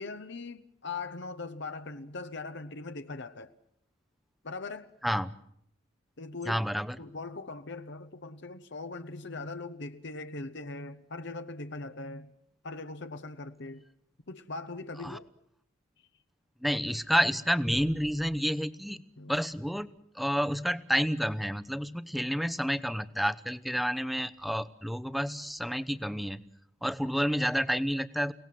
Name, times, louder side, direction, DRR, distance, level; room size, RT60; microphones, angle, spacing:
voice 1, 0.0-3.5 4.4-4.9 6.2-6.6 7.0-12.3 12.6-13.8 14.3-15.3 19.2-19.3, left 3 dB, 60° left, 1.1 m, -40 dB
voice 2, 5.0-5.3 6.5-7.0 15.0-15.2 16.6-26.4 26.8-28.3, equal, ahead, 0.9 m, -30 dB
30.0 x 18.5 x 7.7 m
head